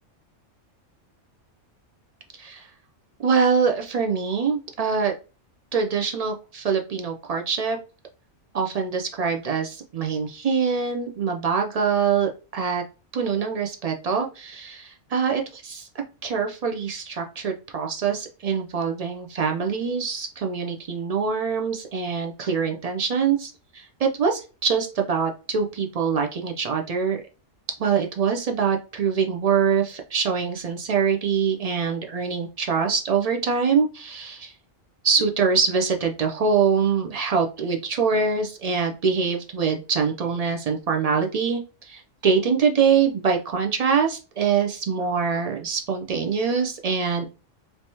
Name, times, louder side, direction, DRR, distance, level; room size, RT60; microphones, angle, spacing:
voice 1, 3.2-5.1 5.7-7.8 8.5-12.8 13.1-15.9 16.2-27.2 27.8-34.5 35.0-47.3, right 6 dB, 65° right, 3 dB, 0.3 m, -24 dB
3.4 x 2.8 x 2.7 m, 0.33 s
omnidirectional pair, 1.3 m